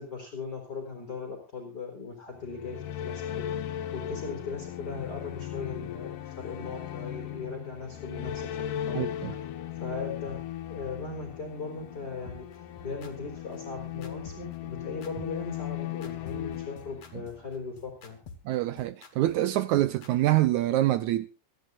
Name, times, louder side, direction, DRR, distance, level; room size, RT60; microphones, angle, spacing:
voice 1, 0.0-9.1 9.4-9.5 9.8-18.2, left 4 dB, 30° left, 4.4 m, -39 dB
sound 1, 2.3-17.6, left 11 dB, 85° left, 3.0 m, -37 dB
sound 2, 8.3-8.4 8.8-8.9 9.3-9.4 9.8-9.9 10.3-10.4 10.8-10.9 11.3-11.4 11.8-11.9 12.3-20.1, left 5 dB, 55° left, 3.3 m, -48 dB
voice 2, 8.9-9.3 18.5-21.3, right 15 dB, 75° right, 2.0 m, -25 dB
27.5 x 11.0 x 2.5 m
omnidirectional pair, 3.7 m